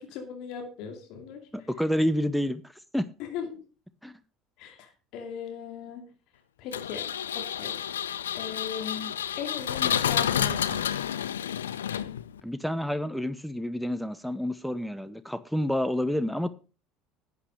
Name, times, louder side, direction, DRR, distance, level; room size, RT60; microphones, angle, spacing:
voice 1, 0.0-1.4 3.2-3.6 4.6-6.1 6.6-7.1 7.3-7.8 8.3-10.8, left 7 dB, 60° left, 2.5 m, -38 dB
voice 2, 1.5-3.1 4.0-4.2 12.4-16.5, equal, ahead, 0.8 m, -29 dB
Engine, 6.7-12.4, left 9 dB, 80° left, 0.5 m, -30 dB
11.0 x 8.4 x 4.9 m
figure-of-eight pair, 65°, 0 cm